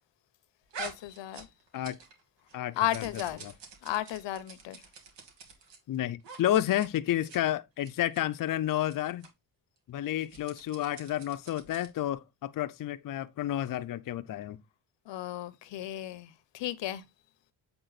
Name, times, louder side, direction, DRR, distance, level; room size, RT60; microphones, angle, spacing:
sound 1, 0.7-2.2 2.5-5.8 6.2-6.4 6.7-6.9 7.2-7.4 7.8-8.2 8.8-8.9 9.2-9.3 10.1-12.0, right 4 dB, 85° right, 2.2 m, -46 dB
voice 1, 0.8-1.5 2.8-3.4 3.8-4.8 15.1-17.0, left 13 dB, 90° left, 0.9 m, -34 dB
voice 2, 2.5-3.0 3.4-3.5 5.9-9.3 9.9-14.6, left 12 dB, 50° left, 0.5 m, -31 dB
8.0 x 3.6 x 4.0 m
cardioid pair, 105°, 42 cm